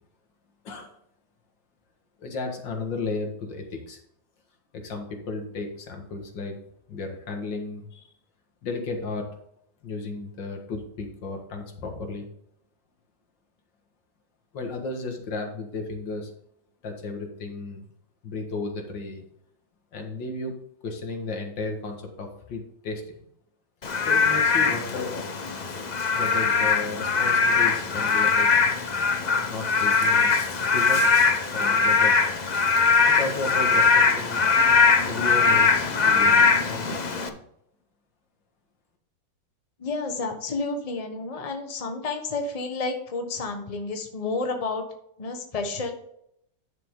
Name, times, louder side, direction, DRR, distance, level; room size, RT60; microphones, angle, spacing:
voice 1, 2.2-4.0 4.7-8.1 8.6-9.3 9.8-12.3 14.5-16.3 16.8-17.9 18.2-19.2 19.9-23.0 24.0-25.2 26.2-28.5 29.5-30.3 30.7-31.2 31.5-32.2 33.1-34.5 35.0-37.4, left 3 dB, 80° left, 3 dB, 2.3 m, -34 dB
Frog / Rain, 23.8-37.3, left 5 dB, 50° left, 0.5 m, -21 dB
voice 2, 39.8-44.9 45.2-45.9, left 3 dB, 25° left, 5 dB, 1.1 m, -30 dB
10.5 x 6.8 x 3.7 m, 0.73 s
omnidirectional pair, 2.0 m